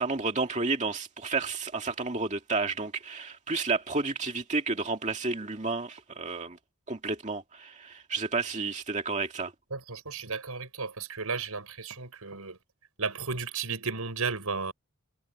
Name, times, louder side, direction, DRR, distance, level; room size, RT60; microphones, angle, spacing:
voice 1, 0.0-6.6 6.9-9.5, right 3 dB, 30° right, 2.3 m, -31 dB
voice 2, 9.7-12.6 13.0-14.7, right 4 dB, 85° right, 5.2 m, -34 dB
head